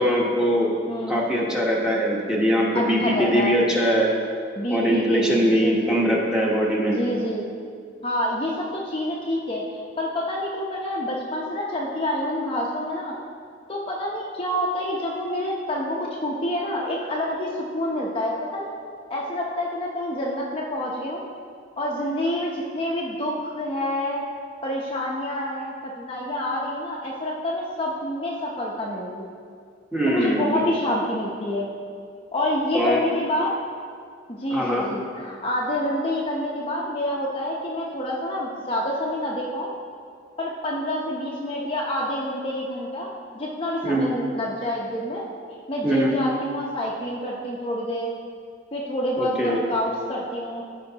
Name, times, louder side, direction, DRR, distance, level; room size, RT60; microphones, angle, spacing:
voice 1, 0.0-0.7 1.1-4.1 4.7-7.0 29.9-30.6 32.7-33.0 34.5-34.9 43.8-44.1 45.8-46.2 49.2-49.6, equal, 5° right, -4 dB, 1.1 m, -22 dB
voice 2, 0.9-1.2 2.7-3.6 4.6-6.2 6.8-7.4 8.0-13.1 13.7-18.7 19.1-21.2 21.8-24.2 24.6-29.3 30.1-31.7 32.3-33.6 34.3-39.7 40.4-43.1 43.3-45.2 45.5-48.1 48.7-50.6, left 1 dB, 30° left, -3 dB, 0.7 m, -27 dB
14.0 x 5.1 x 2.9 m, 2.2 s
head